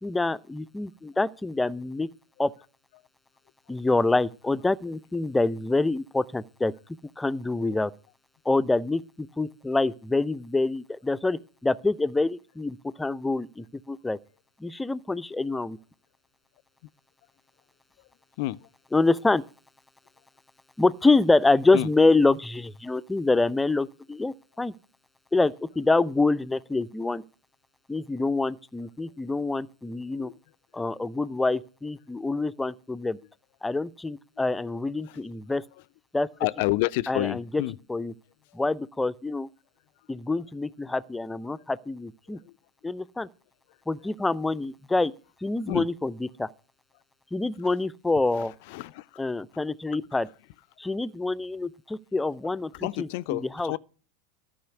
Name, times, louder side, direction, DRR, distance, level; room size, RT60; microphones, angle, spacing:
voice 1, 0.0-2.1 2.4-2.5 3.7-6.7 7.2-7.9 8.5-14.2 14.6-15.8 18.9-19.4 20.8-24.7 25.3-27.2 27.9-30.3 30.7-33.2 33.6-35.6 36.1-36.3 37.1-37.6 37.9-38.1 38.5-39.5 40.1-42.4 42.8-43.3 43.9-45.1 45.4-46.5 47.3-48.5 49.2-50.3 50.8-53.7, left 3 dB, 10° left, 0.5 m, -26 dB
voice 2, 36.4-37.8 42.3-42.4 45.7-45.9 48.3-49.0 52.7-53.8, left 20 dB, 60° left, 0.5 m, -29 dB
13.5 x 5.6 x 8.1 m
hypercardioid pair, 90°, 0 cm